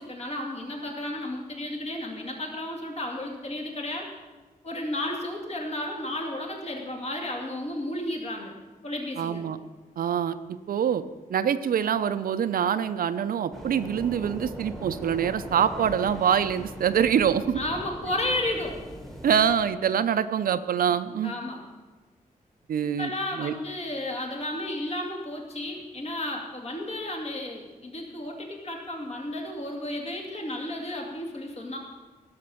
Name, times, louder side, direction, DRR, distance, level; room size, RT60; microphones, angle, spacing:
voice 1, 0.0-4.1 4.6-8.5 8.8-9.4 17.6-18.8 21.2-21.6 22.8-31.8, left 1 dB, 45° left, 0 dB, 2.5 m, -33 dB
voice 2, 9.2-9.6 10.0-11.0 11.3-17.6 19.2-21.3 22.7-23.5, right 8 dB, 80° right, 12 dB, 0.6 m, -25 dB
sound 1, 13.5-19.6, equal, ahead, 1.5 m, -40 dB
16.5 x 6.7 x 7.0 m, 1.3 s
wide cardioid pair, 170°, 15 cm